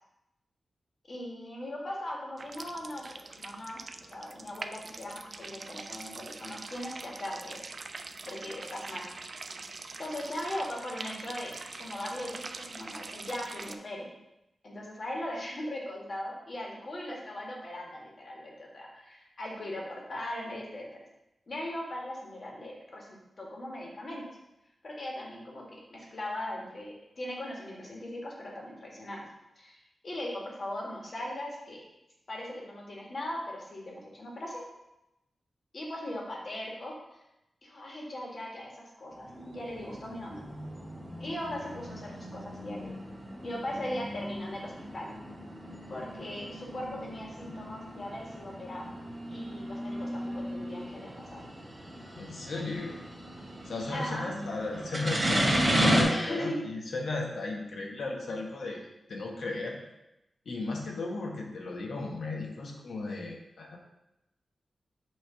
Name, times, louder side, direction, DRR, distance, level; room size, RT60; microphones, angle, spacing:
voice 1, 1.1-7.7 8.3-9.0 10.0-14.1 14.6-20.9 21.5-24.3 24.8-29.2 29.6-31.8 32.3-34.6 35.7-37.0 37.6-40.4 41.2-42.9 43.4-45.1 45.9-48.9 49.3-51.4 53.9-54.3 56.0-56.6, left 1 dB, 55° left, -2 dB, 1.8 m, -39 dB
sound 1, 2.4-13.7, right 3 dB, 50° right, 0.4 m, -44 dB
sound 2, 39.2-56.0, equal, 35° right, 1.6 m, -34 dB
voice 2, 52.1-53.0 53.6-58.8 59.1-59.8 60.4-63.8, left 3 dB, 80° left, 0 dB, 1.2 m, -36 dB
6.4 x 3.1 x 5.7 m, 0.90 s
wide cardioid pair, 80°, 0 cm